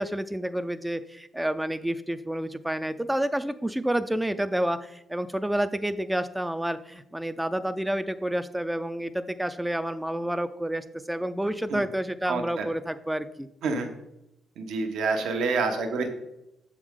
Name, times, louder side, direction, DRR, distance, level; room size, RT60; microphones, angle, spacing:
voice 1, 0.0-13.5, right 1 dB, 5° right, 10 dB, 0.3 m, -29 dB
voice 2, 12.3-12.6 13.6-13.9 14.6-16.1, right 4 dB, 75° right, 5 dB, 0.9 m, -27 dB
7.2 x 4.9 x 3.6 m, 0.90 s
cardioid pair, 90°, 0 cm